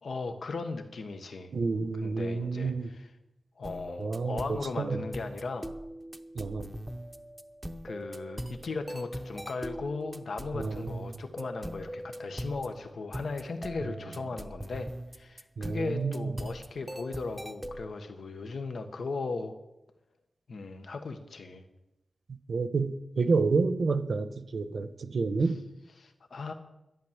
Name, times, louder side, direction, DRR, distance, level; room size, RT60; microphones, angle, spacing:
voice 1, 0.0-1.5 2.0-3.1 3.6-5.7 7.8-19.6 20.5-21.6 26.0-26.5, left 3 dB, 65° left, 7 dB, 1.2 m, -37 dB
voice 2, 1.5-2.9 4.0-4.4 4.8-5.0 6.3-6.7 10.5-10.9 15.6-16.3 22.5-25.6, right 4 dB, 65° right, 11 dB, 0.9 m, -29 dB
sound 1, 3.6-17.9, equal, 5° right, 0.8 m, -41 dB
11.5 x 11.0 x 7.3 m, 0.93 s
wide cardioid pair, 135°, 0 cm